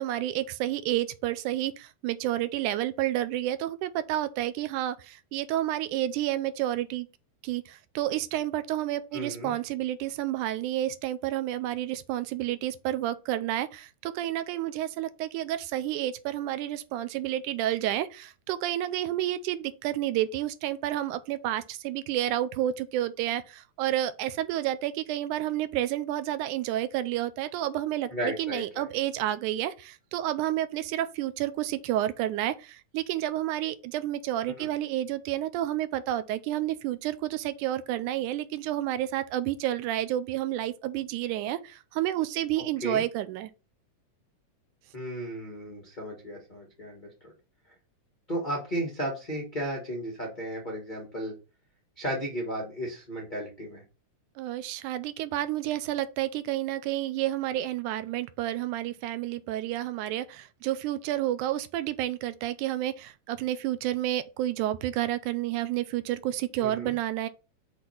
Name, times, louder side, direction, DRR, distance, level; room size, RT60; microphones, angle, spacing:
voice 1, 0.0-7.1 7.4-43.5 54.4-67.3, right 13 dB, 80° right, 2.0 m, -30 dB
voice 2, 9.1-9.5 28.1-28.9 34.6-34.7 42.8-43.0 44.9-47.3 48.3-51.3 52.0-53.8 66.6-66.9, right 1 dB, 70° left, 0.4 m, -34 dB
6.0 x 3.2 x 5.5 m
omnidirectional pair, 3.7 m